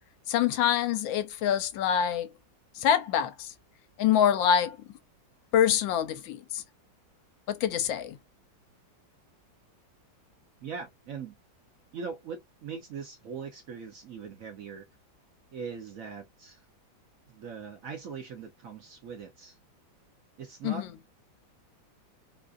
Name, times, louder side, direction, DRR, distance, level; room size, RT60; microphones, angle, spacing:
voice 1, 0.3-2.3 2.7-3.5 4.0-4.8 5.5-6.6 7.5-8.2 20.6-20.9, left 9 dB, 85° left, 1.4 m, -25 dB
voice 2, 10.6-11.4 11.9-14.9 15.5-16.6 17.3-19.6 20.4-20.9, right 6 dB, 60° right, 0.9 m, -41 dB
3.8 x 2.4 x 2.4 m
omnidirectional pair, 2.1 m